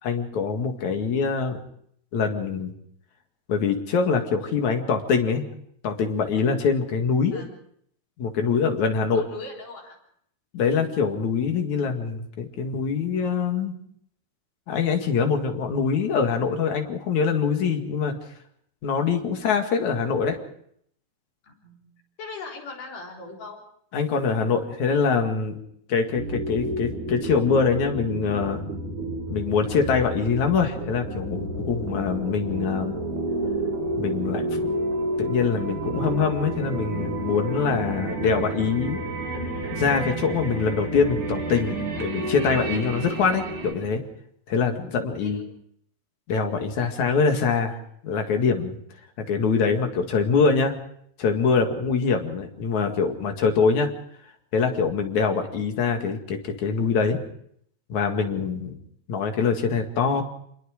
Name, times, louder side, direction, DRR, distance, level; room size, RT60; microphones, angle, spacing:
voice 1, 0.0-1.6 2.1-2.7 3.5-5.5 5.8-7.4 8.2-9.2 10.5-13.8 14.7-18.2 18.8-20.4 23.9-25.6 25.9-28.6 29.3-33.0 34.0-34.6 35.2-39.0 39.7-44.0 44.5-45.4 46.3-47.8 48.0-48.8 49.3-50.7 51.2-53.9 54.5-57.2 57.9-58.8 59.1-60.2, left 5 dB, 65° left, 5 dB, 3.4 m, -24 dB
voice 2, 9.1-10.0 21.4-21.8 22.2-23.6 45.0-45.5 46.8-46.9, left 3 dB, 85° left, -1 dB, 5.6 m, -40 dB
sound 1, 26.2-43.7, right 2 dB, 75° right, 7.6 m, -30 dB
26.0 x 22.0 x 5.0 m, 0.68 s
omnidirectional pair, 3.6 m